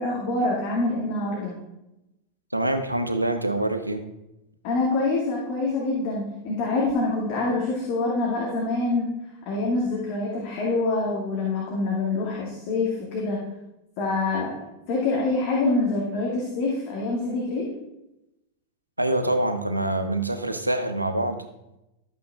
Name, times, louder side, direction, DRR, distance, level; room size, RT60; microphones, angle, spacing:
voice 1, 0.0-1.5 4.6-9.1 9.5-13.4 14.0-14.5 14.9-17.7, left 3 dB, 45° left, -3 dB, 2.3 m, -25 dB
voice 2, 2.5-4.0 19.0-21.4, right 1 dB, 85° right, 8 dB, 0.9 m, -25 dB
12.5 x 8.5 x 3.6 m, 0.92 s
figure-of-eight pair, 90°, 0 cm